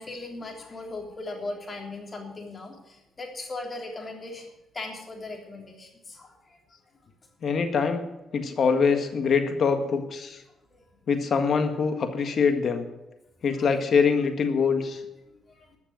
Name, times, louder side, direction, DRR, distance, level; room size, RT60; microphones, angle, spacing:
voice 1, 0.0-4.5 4.7-6.6 10.7-10.8 15.3-15.7, left 2 dB, 35° left, 1 dB, 3.3 m, -38 dB
voice 2, 7.4-8.0 8.3-10.4 11.1-12.8 13.4-15.0, left 5 dB, 55° left, 7 dB, 1.7 m, -24 dB
13.0 x 6.7 x 9.1 m, 0.96 s
cardioid pair, 90°, 0 cm